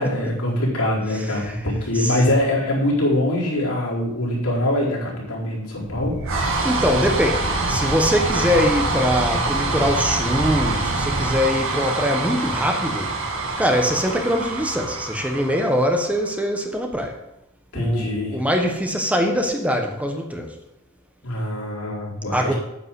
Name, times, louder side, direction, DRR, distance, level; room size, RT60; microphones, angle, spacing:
voice 1, 0.0-6.3 17.7-18.4 21.2-22.5, left 1 dB, 90° left, -5 dB, 4.5 m, -23 dB
voice 2, 1.2-1.6 1.9-2.2 6.6-13.1 13.6-17.2 17.7-20.6 22.3-22.5, equal, 5° right, 3 dB, 1.2 m, -23 dB
sound 1, 5.7-16.3, right 2 dB, 65° right, 2.1 m, -25 dB
9.6 x 5.5 x 8.2 m, 0.88 s
head